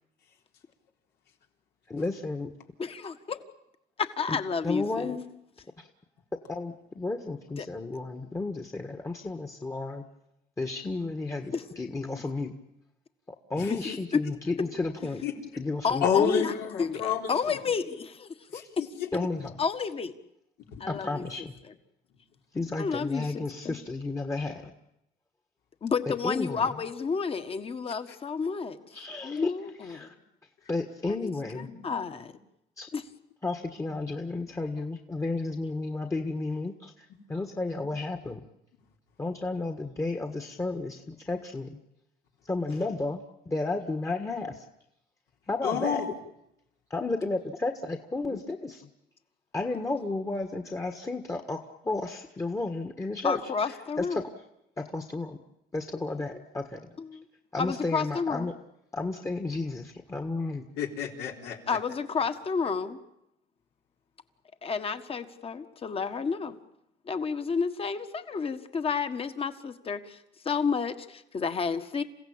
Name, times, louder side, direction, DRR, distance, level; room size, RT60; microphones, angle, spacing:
voice 1, 1.9-2.5 4.3-4.4 4.6-5.2 5.8-5.9 6.5-10.0 10.6-12.5 13.5-15.2 15.6-16.1 19.1-19.5 20.9-21.5 22.5-24.7 26.1-26.7 28.9-29.5 29.8-30.1 30.7-31.7 32.8-32.9 33.4-38.4 39.2-41.8 42.4-44.6 45.5-46.0 46.9-48.8 49.5-54.3 54.8-55.4 55.7-56.9 57.5-58.5 58.9-60.6, left 3 dB, 20° left, 5 dB, 1.5 m, -32 dB
voice 2, 2.8-3.4 4.0-5.2 7.6-7.7 11.5-11.6 13.7-14.2 15.8-18.6 19.6-20.1 20.8-21.2 22.8-23.7 25.8-28.8 29.2-30.1 31.1-31.3 31.8-32.3 32.9-33.0 48.2-48.4 53.2-54.2 57.0-57.2 57.6-58.5 61.7-63.0 64.6-66.6 67.1-70.2 70.4-72.0, left 5 dB, 35° left, 9 dB, 1.7 m, -31 dB
voice 3, 16.0-17.6 18.5-19.1 20.7-20.8 31.6-31.7 45.6-46.0 60.8-61.8, left 7 dB, 80° left, 1 dB, 3.8 m, -29 dB
28.5 x 16.0 x 8.8 m, 0.84 s
cardioid pair, 110°, 17 cm